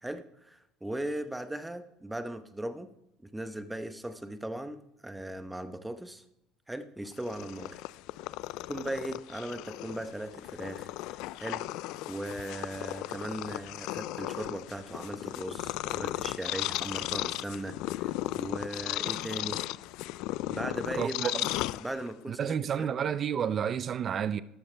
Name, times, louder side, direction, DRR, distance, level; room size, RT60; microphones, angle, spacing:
voice 1, 0.0-2.9 3.2-6.2 6.7-7.8 8.7-10.9 11.4-11.7 12.1-19.6 20.5-21.4 21.8-22.9, right 1 dB, 5° right, 0.9 m, -38 dB
Purr, 7.1-22.3, left 17 dB, 70° left, 0.3 m, -36 dB
voice 2, 21.0-21.3 22.3-24.4, right 8 dB, 35° right, 0.4 m, -30 dB
13.5 x 12.0 x 3.3 m
cardioid pair, 135°, 0 cm